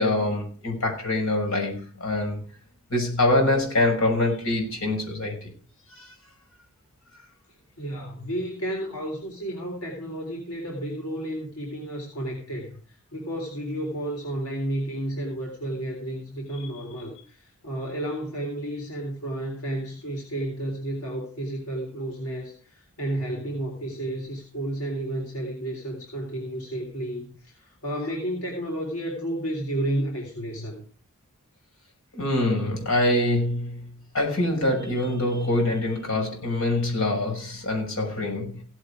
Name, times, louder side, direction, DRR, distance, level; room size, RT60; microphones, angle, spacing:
voice 1, 0.0-2.4 2.9-5.5 5.9-6.1 16.6-16.7 32.1-33.9 34.1-38.6, left 1 dB, 65° left, 1 dB, 6.1 m, -25 dB
voice 2, 7.8-30.8, right 1 dB, 85° left, -1 dB, 3.8 m, -32 dB
17.0 x 8.2 x 5.0 m, 0.40 s
head